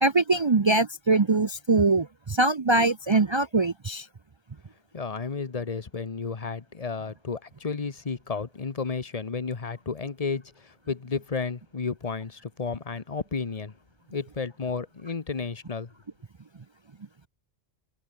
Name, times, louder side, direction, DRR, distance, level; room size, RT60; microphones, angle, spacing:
voice 1, 0.0-4.1, right 3 dB, 30° right, 0.6 m, -22 dB
voice 2, 4.9-13.7 14.1-15.9, left 5 dB, 35° left, 1.1 m, -32 dB
omnidirectional pair, 1.1 m